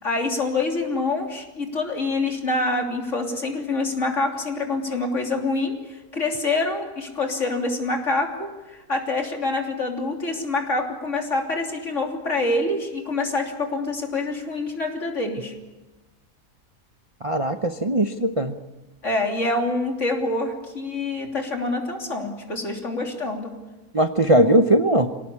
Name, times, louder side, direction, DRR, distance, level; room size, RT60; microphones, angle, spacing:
voice 1, 0.0-5.8 6.1-15.5 19.0-23.5, left 2 dB, 55° left, 2 dB, 3.6 m, -26 dB
voice 2, 17.2-18.6 23.9-25.1, right 1 dB, 25° right, 7 dB, 0.8 m, -19 dB
26.5 x 18.0 x 8.5 m, 1.1 s
omnidirectional pair, 1.5 m